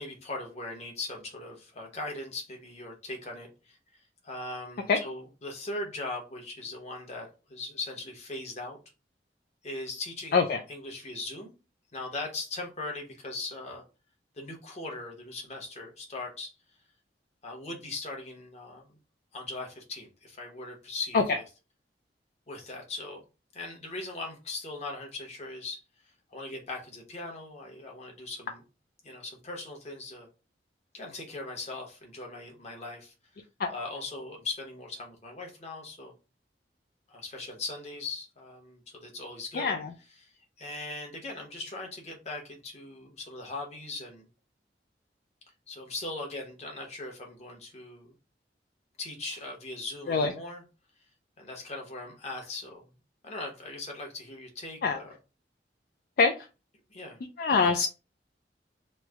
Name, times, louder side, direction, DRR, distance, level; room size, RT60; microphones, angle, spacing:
voice 1, 0.0-8.8 9.6-11.5 11.9-13.8 14.3-16.5 17.4-19.0 19.3-21.4 22.5-23.2 23.5-28.6 29.0-30.3 30.9-33.1 33.7-36.1 37.1-39.7 40.2-44.3 45.7-48.1 49.0-50.6 51.4-52.9 53.2-55.1 56.9-57.2, left 2 dB, 40° left, 0.9 m, -39 dB
voice 2, 39.5-39.9 50.1-50.3 54.8-55.0 56.2-56.5 57.4-57.9, left 4 dB, 55° left, 0.3 m, -24 dB
3.1 x 2.0 x 3.4 m
head